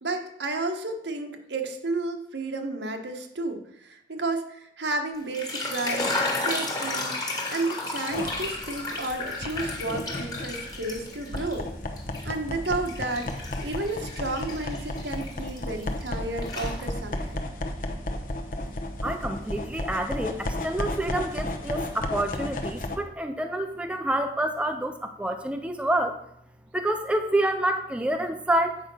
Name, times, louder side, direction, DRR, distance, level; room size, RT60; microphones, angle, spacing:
voice 1, 0.0-11.7 12.2-17.4, right 2 dB, 80° right, 3 dB, 1.4 m, -32 dB
sound 1, 5.2-11.6 12.0-16.1 16.4-17.2, left 2 dB, 20° left, 1.6 m, -33 dB
sound 2, 8.1-23.0, left 1 dB, 45° left, 0.9 m, -34 dB
voice 2, 19.0-26.2 26.7-28.8, right 1 dB, 5° right, 6 dB, 0.5 m, -28 dB
8.8 x 5.2 x 6.3 m, 0.74 s
head